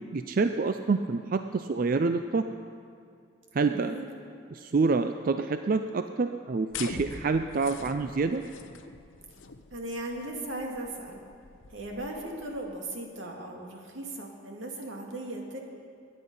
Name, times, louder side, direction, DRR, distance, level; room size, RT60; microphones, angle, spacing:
voice 1, 0.1-2.5 3.5-4.0 4.5-8.4, right 4 dB, 45° right, 8 dB, 0.4 m, -27 dB
voice 2, 3.6-4.1 9.7-11.2 11.7-15.6, right 1 dB, 85° right, 0 dB, 2.2 m, -37 dB
sound 1, 6.7-12.8, left 5 dB, 90° left, 0.7 m, -44 dB
21.5 x 9.8 x 5.4 m, 2.4 s
head